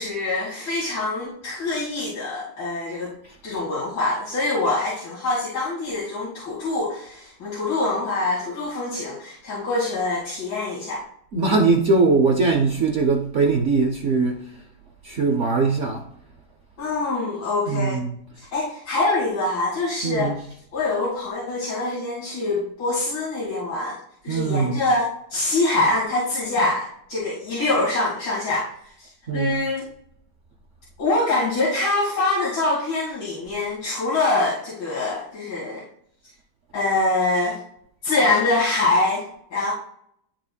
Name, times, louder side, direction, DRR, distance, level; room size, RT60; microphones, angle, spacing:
voice 1, 0.0-3.1 3.4-11.0 16.8-18.0 18.4-20.5 20.7-24.0 24.2-28.7 29.0-29.9 31.0-35.8 36.7-37.6 38.0-39.7, left 2 dB, 75° left, 2.7 m, -24 dB
voice 2, 11.3-14.4 15.0-16.0 17.7-18.2 20.0-20.4 24.3-24.8 29.3-29.6, right 4 dB, 70° right, 0.6 m, -21 dB
12.0 x 4.1 x 2.2 m
omnidirectional pair, 2.1 m